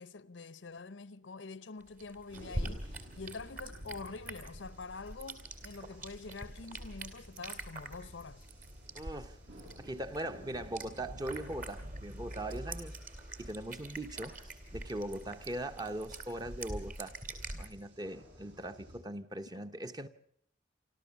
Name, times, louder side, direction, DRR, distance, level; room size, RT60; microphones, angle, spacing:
voice 1, 0.0-8.5, left 4 dB, 85° left, 0.8 m, -46 dB
sound 1, 1.8-17.7, right 1 dB, 50° right, 2.9 m, -45 dB
sound 2, 2.3-19.0, equal, 70° right, 6.8 m, -54 dB
voice 2, 8.9-9.4 9.8-13.0 13.4-14.4 14.7-17.2 17.5-20.1, right 1 dB, 20° right, 0.8 m, -40 dB
28.0 x 13.0 x 7.1 m
head